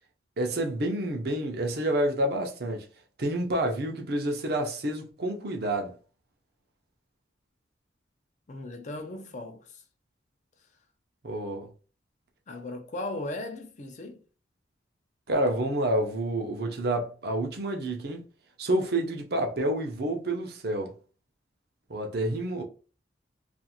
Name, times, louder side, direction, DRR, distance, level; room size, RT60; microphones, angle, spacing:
voice 1, 0.4-2.9 3.2-5.9 11.2-11.7 15.3-18.2 18.6-20.9 21.9-22.6, right 1 dB, 55° right, 0.6 m, -28 dB
voice 2, 8.5-9.8 12.5-14.2, left 2 dB, 40° left, 0.5 m, -37 dB
2.5 x 2.4 x 2.8 m
head